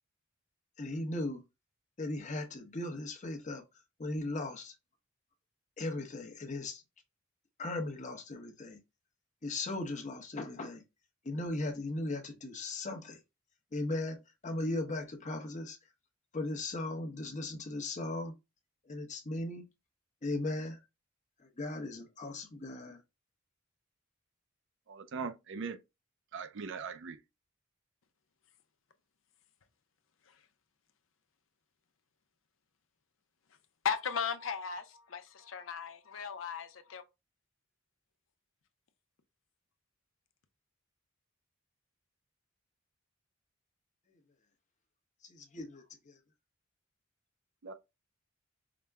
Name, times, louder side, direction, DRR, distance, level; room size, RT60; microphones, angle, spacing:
voice 1, 0.8-1.4 2.0-3.6 4.0-4.7 5.8-6.8 7.6-8.8 9.4-10.8 11.2-13.2 13.7-15.8 16.3-18.3 18.9-19.6 20.2-20.8 21.6-23.0 45.2-46.1, left 2 dB, 35° left, 0.9 m, -37 dB
voice 2, 24.9-25.8 26.3-27.2 47.6-47.7, right 5 dB, 65° right, 0.5 m, -40 dB
voice 3, 33.8-37.0, left 7 dB, 70° left, 0.6 m, -36 dB
5.0 x 2.2 x 3.4 m
head